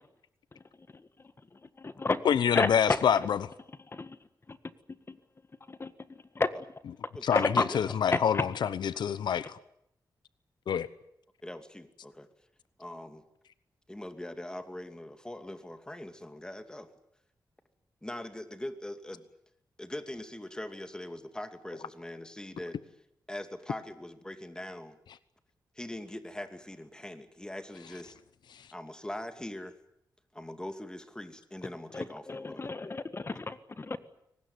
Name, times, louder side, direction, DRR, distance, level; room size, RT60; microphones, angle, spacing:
voice 1, 0.9-2.2 2.5-3.0 3.8-4.2 4.5-4.6 4.9-5.2 5.7-6.5 7.3-8.5 31.9-34.0, left 3 dB, 35° left, 1.7 m, -32 dB
voice 2, 2.2-3.4 7.2-7.4 7.7-9.6 10.7-10.9, left 8 dB, 90° left, 0.9 m, -26 dB
voice 3, 11.4-12.3 12.8-13.2 13.9-16.9 18.0-19.3 19.8-22.8 23.3-25.0 25.8-28.2 28.7-29.7 30.3-32.6, left 1 dB, 10° left, 2.5 m, -42 dB
23.0 x 19.5 x 9.7 m
cardioid pair, 90°, 7 cm